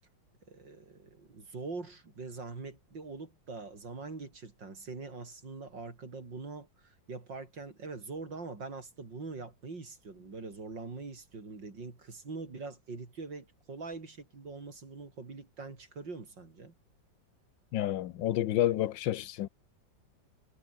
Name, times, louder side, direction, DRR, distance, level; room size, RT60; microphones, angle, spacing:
voice 1, 0.5-16.7, right 3 dB, 70° right, 4.6 m, -43 dB
voice 2, 17.7-19.5, left 13 dB, 80° left, 1.6 m, -29 dB
omnidirectional pair, 2.0 m